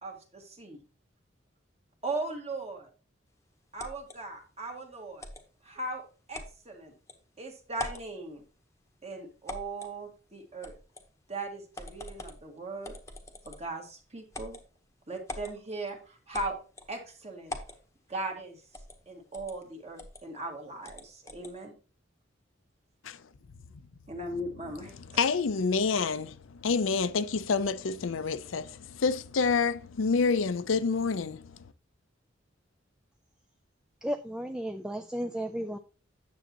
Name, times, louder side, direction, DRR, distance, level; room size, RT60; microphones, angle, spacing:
voice 1, 0.0-0.8 2.0-2.9 3.7-5.3 5.6-6.0 6.3-6.9 7.4-8.4 9.0-10.7 11.3-12.9 13.5-14.6 15.1-16.6 16.9-17.6 18.1-18.6 19.1-21.7 24.1-24.9, right 2 dB, 35° right, 1.8 m, -38 dB
sound 1, 3.8-4.2 5.2-5.4 6.3-6.5 7.1-7.2 7.7-8.1 9.5-9.9 10.6-11.1 11.7-12.4 12.8-13.7 14.3-14.6 15.3-15.5 16.3-16.9 17.5-17.8 18.7-19.0 19.3-19.5 20.0-20.2 20.8-21.5, left 2 dB, 15° left, 1.0 m, -42 dB
voice 2, 24.9-31.6, left 5 dB, 90° left, 0.6 m, -28 dB
voice 3, 34.0-35.8, equal, 5° right, 0.4 m, -34 dB
9.5 x 7.2 x 2.9 m
head